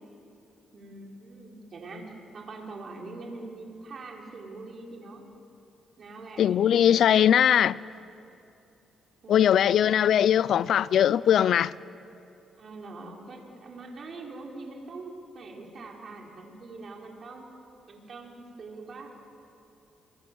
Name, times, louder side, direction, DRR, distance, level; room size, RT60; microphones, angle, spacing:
voice 1, 0.7-5.3 6.0-7.0 9.2-9.6 12.6-17.5 17.9-19.1, right 3 dB, 50° right, 5.2 m, -43 dB
voice 2, 6.4-7.8 9.3-11.7, left 10 dB, 65° left, 0.5 m, -20 dB
28.0 x 23.5 x 7.9 m
cardioid pair, 90°, 0 cm